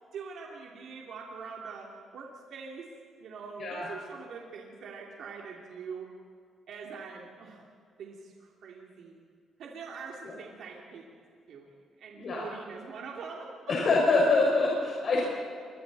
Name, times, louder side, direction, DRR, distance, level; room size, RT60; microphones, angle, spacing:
voice 1, 0.1-1.9 2.1-2.8 3.2-6.1 6.7-7.6 8.0-9.2 9.6-11.1 11.5-13.8, right 5 dB, 70° right, -2 dB, 3.1 m, -43 dB
voice 2, 13.7-15.2, left 3 dB, 55° left, -3 dB, 5.6 m, -25 dB
28.5 x 24.0 x 4.3 m, 2.3 s
cardioid pair, 90°, 0 cm